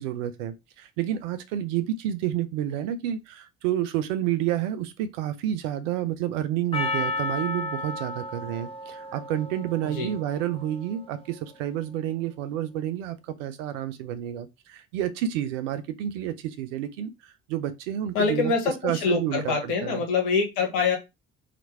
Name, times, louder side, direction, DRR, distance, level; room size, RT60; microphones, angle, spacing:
voice 1, 0.0-18.5 18.8-20.0, right 11 dB, 70° right, 0.6 m, -30 dB
Percussion, 6.7-11.2, left 2 dB, 15° left, 0.7 m, -33 dB
voice 2, 18.1-21.0, left 4 dB, 65° left, 1.3 m, -25 dB
2.9 x 2.5 x 4.1 m
figure-of-eight pair, 45°, 39 cm